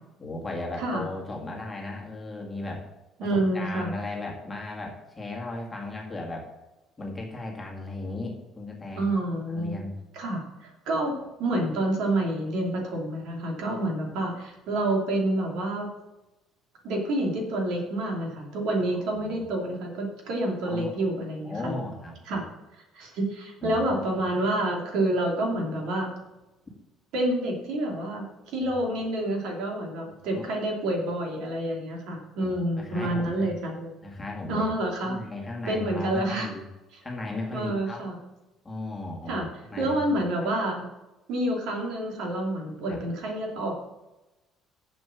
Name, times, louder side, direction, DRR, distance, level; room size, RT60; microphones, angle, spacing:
voice 1, 0.2-2.8 3.3-6.5 7.0-9.0 9.5-9.9 19.2-19.4 20.7-20.9 21.4-22.4 23.6-24.0 30.3-30.4 32.4-33.5 34.0-34.7 35.0-36.6 37.0-38.0 38.6-40.2 42.9-43.0, left 2 dB, 10° left, -1 dB, 2.0 m, -36 dB
voice 2, 3.2-3.9 9.0-9.8 10.1-11.1 11.4-15.9 16.8-21.8 22.3-22.4 22.9-26.1 27.1-33.9 34.5-35.2 35.7-36.5 37.5-38.2 39.3-39.5 39.8-40.8 41.3-43.7, right 1 dB, 70° right, 1 dB, 2.9 m, -28 dB
7.8 x 7.2 x 7.2 m, 1.0 s
cardioid pair, 175°, 0 cm